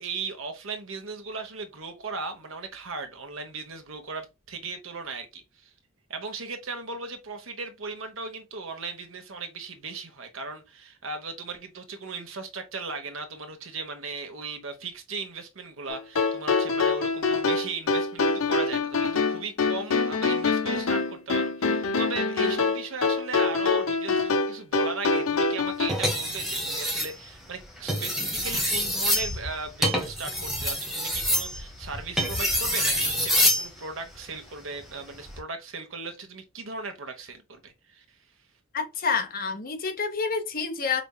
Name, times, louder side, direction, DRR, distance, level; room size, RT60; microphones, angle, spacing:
voice 1, 0.0-5.7 6.1-38.0, right 4 dB, 75° right, 1.0 m, -37 dB
sound 1, 15.9-25.9, left 4 dB, 85° left, 0.7 m, -25 dB
sound 2, 25.9-27.1 27.8-33.7 35.1-35.4, equal, ahead, 1.1 m, -26 dB
voice 2, 38.7-41.0, left 5 dB, 45° left, 0.9 m, -28 dB
5.1 x 3.4 x 2.2 m
head